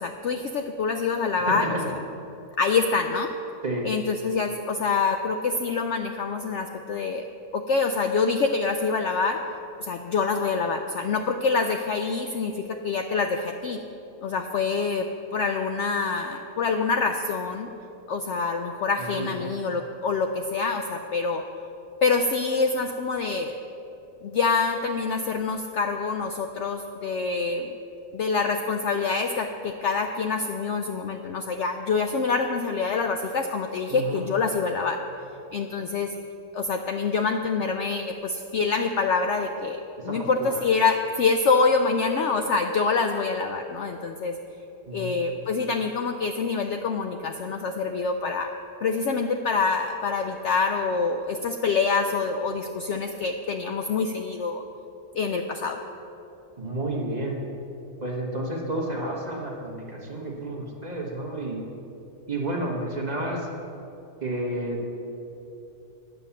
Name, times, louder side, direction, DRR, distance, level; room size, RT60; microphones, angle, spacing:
voice 1, 0.0-2.0 2.6-3.3 3.8-7.3 7.5-9.4 9.8-13.8 14.2-17.7 18.1-21.4 22.0-23.6 24.2-27.7 28.1-35.0 35.5-36.1 36.5-44.4 44.9-48.5 48.8-54.6 55.1-55.8, left 4 dB, 70° left, 6 dB, 0.7 m, -26 dB
voice 2, 1.5-1.8 3.6-3.8 19.0-19.5 33.9-34.2 40.1-40.6 44.9-45.1 56.6-57.4 58.0-61.6 62.3-63.5 64.2-64.8, right 1 dB, 30° right, -1 dB, 1.2 m, -31 dB
9.4 x 7.0 x 7.1 m, 2.9 s
omnidirectional pair, 1.6 m